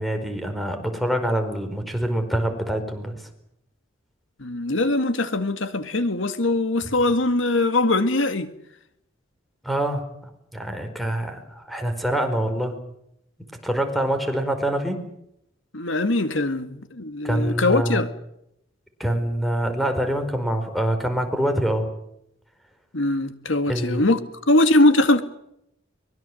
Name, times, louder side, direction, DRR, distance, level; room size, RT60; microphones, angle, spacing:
voice 1, 0.0-3.1 9.6-12.7 13.6-15.0 17.2-18.0 19.0-21.9 23.7-24.1, right 1 dB, ahead, 4.7 m, -25 dB
voice 2, 4.4-8.5 15.7-18.1 22.9-24.2 24.5-25.2, left 2 dB, 75° left, 2.1 m, -21 dB
24.0 x 22.0 x 7.9 m
head